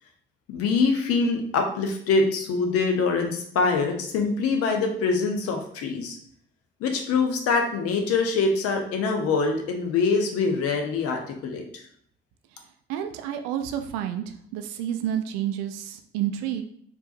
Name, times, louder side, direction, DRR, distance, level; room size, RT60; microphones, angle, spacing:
voice 1, 0.5-6.2 6.8-11.8, left 4 dB, 55° left, 3 dB, 0.7 m, -24 dB
voice 2, 12.9-16.6, right 10 dB, 60° right, 7 dB, 0.4 m, -30 dB
4.5 x 2.6 x 2.5 m, 0.63 s
figure-of-eight pair, 45°, 29 cm